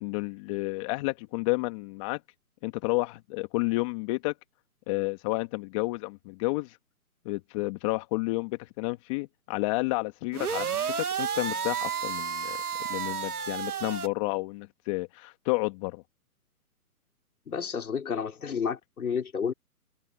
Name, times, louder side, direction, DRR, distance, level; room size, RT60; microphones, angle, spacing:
voice 1, 0.0-2.2 2.6-4.3 4.9-6.8 7.3-12.6 12.9-16.0, left 23 dB, 20° left, 1.8 m, -31 dB
sound 1, 10.3-14.1, right 7 dB, 80° right, 2.0 m, -31 dB
voice 2, 17.5-19.5, left 6 dB, 70° left, 5.0 m, -31 dB
open air
hypercardioid pair, 155°, 45 cm